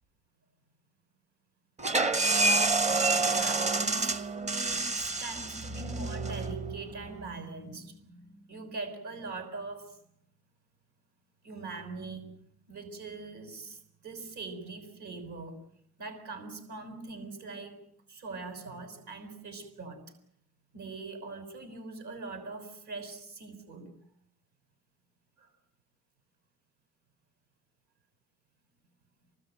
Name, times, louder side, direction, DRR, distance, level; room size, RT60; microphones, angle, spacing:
sound 1, 1.8-7.3, right 3 dB, 25° right, 0.9 m, -28 dB
voice 1, 3.1-10.0 11.4-12.2 12.7-15.6 16.0-17.8 18.1-20.0 20.7-23.9 25.4-25.5, right 3 dB, 70° right, 7 dB, 6.2 m, -42 dB
26.0 x 19.5 x 9.1 m, 0.69 s
cardioid pair, 90°, 30 cm